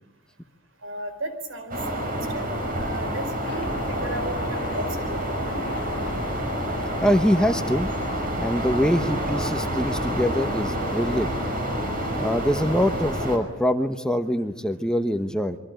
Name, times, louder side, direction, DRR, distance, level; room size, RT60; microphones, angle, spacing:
voice 1, 0.8-1.8 2.1-5.6, right 1 dB, 80° right, 9 dB, 4.6 m, -35 dB
sound 1, 1.7-13.4, equal, 45° right, 5.6 m, -28 dB
sound 2, 3.5-13.0, left 2 dB, 50° left, 1.8 m, -36 dB
voice 2, 7.0-7.9 8.4-11.3 12.2-15.6, equal, 5° left, 7 dB, 1.0 m, -24 dB
26.5 x 23.5 x 9.1 m, 1.0 s
head